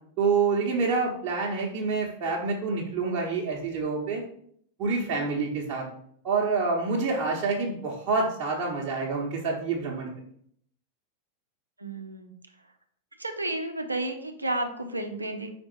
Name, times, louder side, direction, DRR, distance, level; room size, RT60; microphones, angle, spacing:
voice 1, 0.2-4.2 4.8-5.8 6.2-10.1, right 4 dB, 40° right, -5 dB, 1.2 m, -27 dB
voice 2, 11.8-12.3 13.2-15.5, right 1 dB, 85° right, 5 dB, 0.7 m, -32 dB
5.2 x 4.2 x 4.6 m, 0.65 s
figure-of-eight pair, 90°, 0 cm